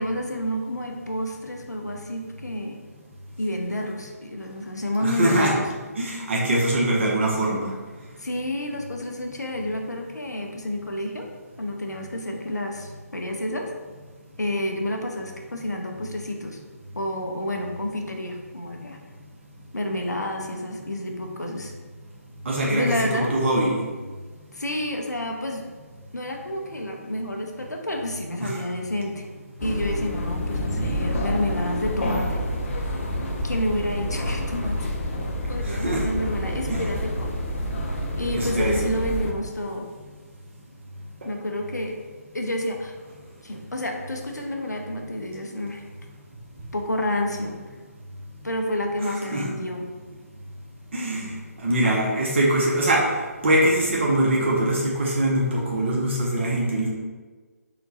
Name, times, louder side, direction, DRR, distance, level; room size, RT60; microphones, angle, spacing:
voice 1, 0.0-2.8 3.4-5.7 8.2-11.3 11.6-13.7 14.4-16.6 16.9-19.0 19.7-21.7 22.7-23.4 24.5-25.6 26.1-29.3 29.6-32.4 33.4-34.9 35.5-37.3 38.2-39.9 41.2-41.9 42.3-42.9 43.4-45.8 46.7-47.6 48.4-49.8, left 1 dB, 85° left, 2 dB, 0.7 m, -29 dB
voice 2, 5.0-5.5 6.0-7.7 22.4-23.8 28.4-28.6 35.6-36.0 36.7-36.8 38.3-38.8 49.3-49.5 50.9-51.3 51.6-53.0 53.4-56.9, right 1 dB, 45° right, -4 dB, 0.8 m, -23 dB
sound 1, 29.6-39.3, equal, 50° left, 0.7 m, -28 dB
3.9 x 2.2 x 4.0 m, 1.4 s
figure-of-eight pair, 145°, 9 cm